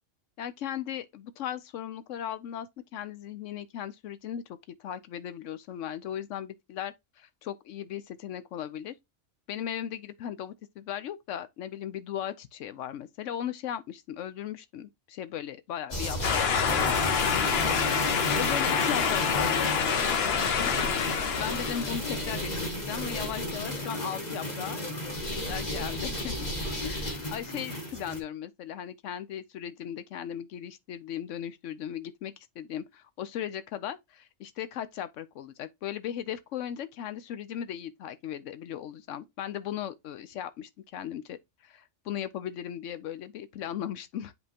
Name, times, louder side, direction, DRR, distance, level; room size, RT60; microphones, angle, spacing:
voice 1, 0.4-2.7 2.9-8.9 9.5-24.8 25.3-26.3 26.8-44.3, left 10 dB, 85° left, 1.0 m, -37 dB
sound 1, 15.9-28.2, left 1 dB, 35° left, 1.5 m, -33 dB
sound 2, 16.2-22.0, left 7 dB, 60° left, 1.0 m, -27 dB
8.0 x 5.3 x 2.8 m
omnidirectional pair, 1.2 m